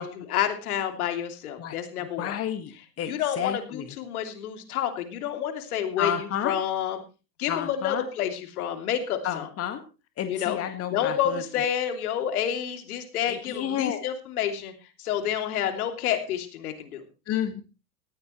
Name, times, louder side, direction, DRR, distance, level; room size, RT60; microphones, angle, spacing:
voice 1, 0.0-2.4 3.1-7.0 7.4-9.5 10.3-10.6 10.9-14.7 15.0-17.0, left 9 dB, 60° left, 6 dB, 3.0 m, -29 dB
voice 2, 2.2-2.7 3.0-3.9 6.0-6.5 7.5-8.0 9.2-9.8 10.2-11.4 13.3-14.0 17.3-17.6, left 10 dB, 30° left, 8 dB, 1.7 m, -30 dB
18.5 x 15.5 x 3.2 m, 0.33 s
figure-of-eight pair, 90°, 48 cm